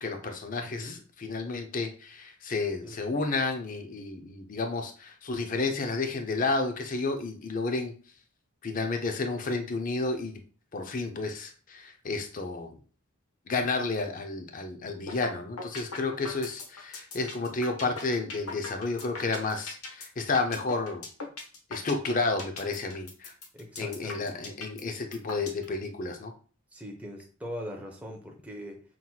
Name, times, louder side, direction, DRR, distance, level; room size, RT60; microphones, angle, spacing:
voice 1, 0.0-7.9 8.6-10.4 10.7-12.8 13.5-21.1 21.7-23.3 23.8-26.3, left 3 dB, 40° left, 5 dB, 0.5 m, -31 dB
voice 2, 0.6-1.0 2.8-3.0 23.5-24.3 26.7-28.8, equal, 5° right, 0 dB, 0.6 m, -41 dB
sound 1, 15.1-15.3 15.6-25.6, left 3 dB, 90° left, 1.0 m, -39 dB
5.6 x 3.0 x 2.2 m, 0.39 s
head